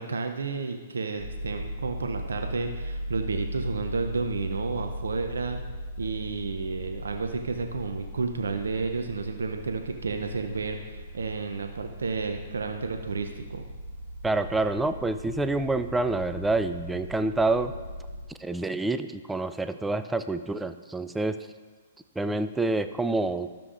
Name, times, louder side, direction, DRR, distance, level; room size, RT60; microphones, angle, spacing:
voice 1, 0.0-5.6 6.0-13.6, right 4 dB, 85° right, 5 dB, 0.6 m, -31 dB
sound 1, 1.2-18.2, equal, 45° right, 2.0 m, -38 dB
voice 2, 14.2-17.7 18.4-21.4 22.2-23.5, right 2 dB, 5° right, 10 dB, 0.3 m, -27 dB
13.0 x 6.8 x 2.5 m, 1.4 s
hypercardioid pair, 130°, 0 cm